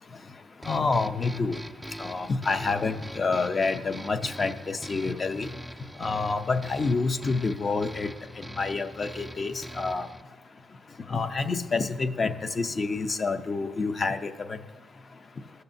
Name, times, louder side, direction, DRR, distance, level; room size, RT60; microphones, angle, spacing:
sound 1, 0.6-10.2, equal, 5° right, 0.3 m, -42 dB
voice 1, 0.7-1.6 2.0-5.5 6.0-8.1 8.6-10.1 11.1-14.6, left 4 dB, 35° left, 10 dB, 0.6 m, -28 dB
15.5 x 6.6 x 2.7 m, 1.3 s
cardioid pair, 90°, 0 cm